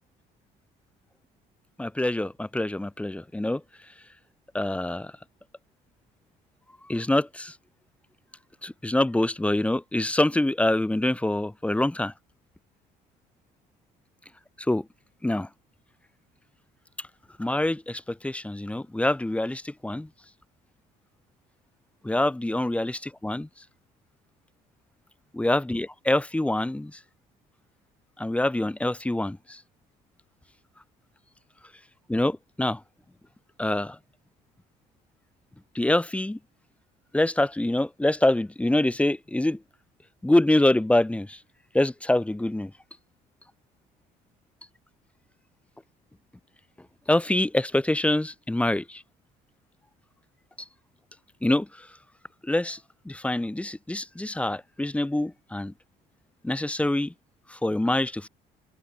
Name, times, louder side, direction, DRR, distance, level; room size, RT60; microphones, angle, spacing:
voice 1, 1.8-3.6 4.5-5.1 6.9-7.5 8.6-12.1 14.7-14.8 15.2-15.5 17.4-20.1 22.0-23.5 25.3-26.9 28.2-29.4 32.1-32.8 33.6-34.0 35.7-36.4 37.1-39.6 40.2-41.4 41.7-42.7 47.1-49.0 51.4-51.7 52.5-52.8 53.0-55.7 56.4-57.1 57.5-58.3, left 1 dB, 5° left, 1.7 m, -25 dB
cardioid pair, 110°, 17 cm